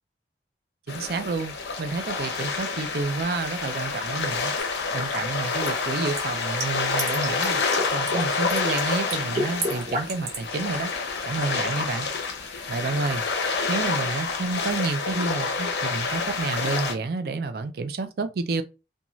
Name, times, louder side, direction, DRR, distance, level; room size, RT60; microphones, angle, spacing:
sound 1, 0.9-16.9, left 4 dB, 70° left, 0.6 m, -28 dB
voice 1, 0.9-4.6 4.9-7.6 7.9-10.9 11.3-12.3 12.7-13.2 13.7-18.6, right 3 dB, 55° right, 0.4 m, -29 dB
sound 2, 4.6-4.8 5.7-7.5 7.7-8.2 8.5-8.8 9.1-10.5, right 1 dB, 40° right, 0.8 m, -29 dB
2.6 x 2.2 x 3.0 m
head